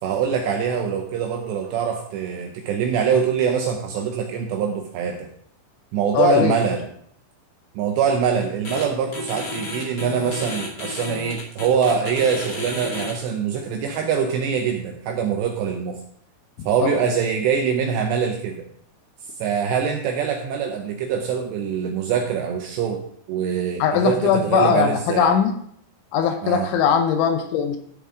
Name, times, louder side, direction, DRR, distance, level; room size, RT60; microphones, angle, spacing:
voice 1, 0.0-5.3 5.9-6.8 7.8-16.0 16.6-18.6 19.4-25.3 26.4-26.7, right 7 dB, 80° right, 3 dB, 2.5 m, -24 dB
voice 2, 6.1-6.6 16.8-16.9 23.8-25.6 26.1-27.8, left 7 dB, 80° left, 6 dB, 2.9 m, -20 dB
sound 1, 8.6-8.8 9.1-13.1, left 2 dB, 40° left, 1.5 m, -32 dB
13.0 x 6.9 x 3.7 m, 0.67 s
omnidirectional pair, 5.9 m